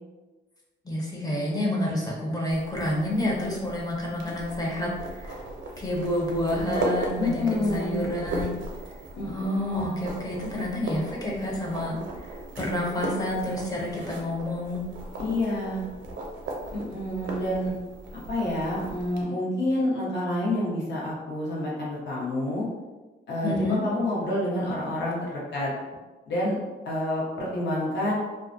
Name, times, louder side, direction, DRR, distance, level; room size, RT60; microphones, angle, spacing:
voice 1, 0.8-5.4 5.8-8.6 9.2-14.8 23.4-23.8, left 1 dB, 20° left, -3 dB, 0.6 m, -29 dB
sound 1, 2.5-19.2, right 2 dB, 80° right, 0.5 m, -37 dB
voice 2, 7.2-8.0 9.2-10.0 15.2-15.8 16.7-17.7 18.1-22.7 23.3-25.7 26.3-26.6 26.8-28.1, left 1 dB, 65° left, -6 dB, 0.9 m, -28 dB
2.3 x 2.1 x 2.5 m, 1.2 s
cardioid pair, 100°, 19 cm